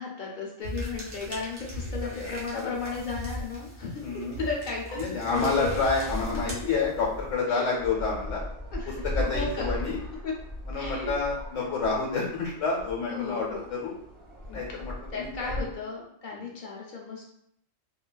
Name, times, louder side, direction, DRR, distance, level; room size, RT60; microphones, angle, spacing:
voice 1, 0.0-5.8 6.6-6.7 7.5-7.7 8.7-9.7 10.2-10.3 10.7-11.1 13.1-13.7 15.1-17.3, left 4 dB, 55° left, -2 dB, 0.6 m, -35 dB
sound 1, 0.6-7.3, equal, 80° right, 1.2 m, -39 dB
voice 2, 2.1-2.7 4.0-4.4 4.9-8.4 8.9-10.0 10.7-13.9 14.5-15.5 16.3-16.5, left 4 dB, 75° left, -2 dB, 1.1 m, -29 dB
Bark, 2.8-3.0 4.8-5.0 5.9-6.1 6.4-6.6 7.8-8.0 10.5-11.7, equal, 65° right, 1.2 m, -47 dB
sound 2, 6.0-15.7, left 1 dB, 35° right, 0.8 m, -37 dB
3.8 x 2.3 x 2.2 m, 0.72 s
omnidirectional pair, 1.3 m